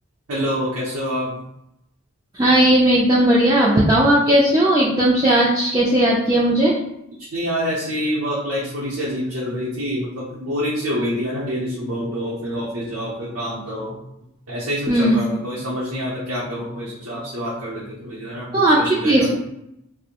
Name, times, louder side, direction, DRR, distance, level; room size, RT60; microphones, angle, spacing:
voice 1, 0.3-1.3 7.3-13.9 14.5-18.6 19.0-19.1, equal, 85° right, -6 dB, 0.6 m, -26 dB
voice 2, 2.3-6.8 14.9-15.2 18.5-19.4, right 1 dB, 20° right, -7 dB, 0.3 m, -16 dB
2.6 x 2.0 x 2.8 m, 0.80 s
head